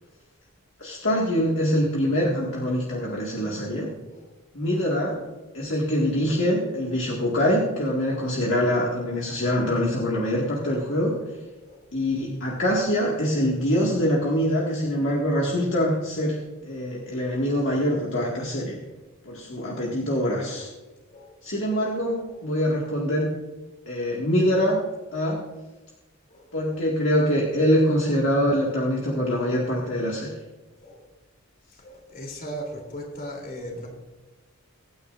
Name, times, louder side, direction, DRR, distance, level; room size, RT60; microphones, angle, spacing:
voice 1, 0.8-3.9 4.5-5.2 5.5-11.2 11.9-18.8 19.3-20.7 21.4-23.3 23.9-24.8 25.1-25.4 26.5-30.3, equal, 55° left, -3 dB, 2.1 m, -24 dB
voice 2, 17.2-17.8 19.8-20.0 21.1-21.4 22.0-22.7 24.2-24.5 26.3-26.8 30.8-31.1 31.7-33.9, equal, 40° left, 0 dB, 3.3 m, -41 dB
23.5 x 9.5 x 2.6 m, 1.2 s
head